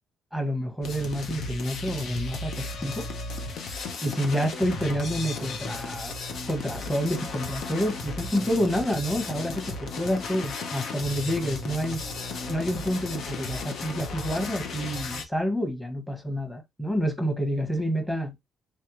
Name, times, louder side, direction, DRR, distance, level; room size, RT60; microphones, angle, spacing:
voice 1, 0.3-3.1 4.0-6.1 6.5-12.0 12.5-18.4, equal, 5° left, 1.2 m, -28 dB
sound 1, 0.8-15.2, left 3 dB, 65° left, 0.8 m, -35 dB
3.3 x 3.3 x 3.1 m
cardioid pair, 120°, 0 cm